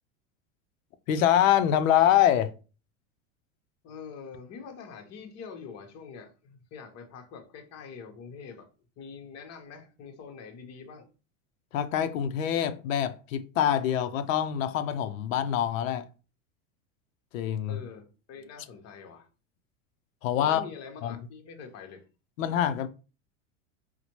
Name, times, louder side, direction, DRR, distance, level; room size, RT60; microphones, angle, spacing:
voice 1, 1.1-2.5 11.7-16.1 17.3-17.8 20.2-20.6 21.0-21.1 22.4-22.9, left 10 dB, 85° left, 0.6 m, -25 dB
voice 2, 3.8-8.7 9.0-11.1 17.7-19.3 20.4-22.0, left 6 dB, 40° left, 1.0 m, -45 dB
4.1 x 2.2 x 2.9 m
supercardioid pair, 120°, 39 cm